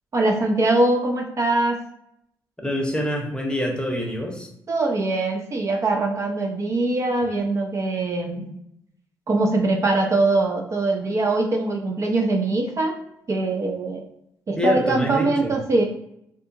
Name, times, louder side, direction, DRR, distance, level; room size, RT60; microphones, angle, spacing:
voice 1, 0.1-1.8 4.7-8.6 9.3-13.0 13.3-14.0 14.5-15.8, right 2 dB, 40° right, 2 dB, 0.4 m, -22 dB
voice 2, 2.6-4.5 14.6-15.6, left 1 dB, 10° left, 1 dB, 0.7 m, -25 dB
2.7 x 2.3 x 2.6 m, 0.76 s
supercardioid pair, 60°, 8 cm